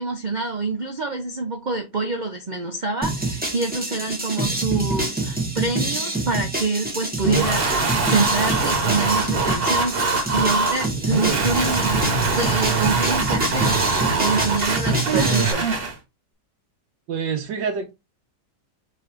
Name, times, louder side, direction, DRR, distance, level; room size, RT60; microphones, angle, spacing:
voice 1, 0.0-12.0 12.3-15.8, right 3 dB, 60° right, 0.4 m, -26 dB
sound 1, 3.0-15.5, right 2 dB, 5° right, 0.8 m, -27 dB
sound 2, 7.2-15.9, right 3 dB, 40° right, 1.0 m, -22 dB
voice 2, 17.1-17.9, right 6 dB, 85° right, 1.3 m, -26 dB
3.8 x 3.8 x 3.3 m
omnidirectional pair, 1.9 m